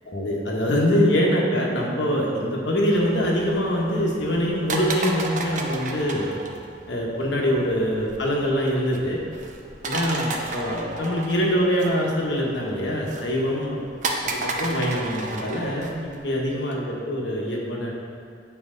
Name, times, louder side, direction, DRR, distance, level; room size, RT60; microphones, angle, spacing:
voice 1, 0.1-6.3 6.9-9.2 9.8-13.8 14.3-17.9, equal, 80° left, -2 dB, 1.3 m, -24 dB
sound 1, 2.9-16.5, right 2 dB, 40° right, 0.6 m, -34 dB
8.7 x 4.7 x 3.9 m, 2.3 s
head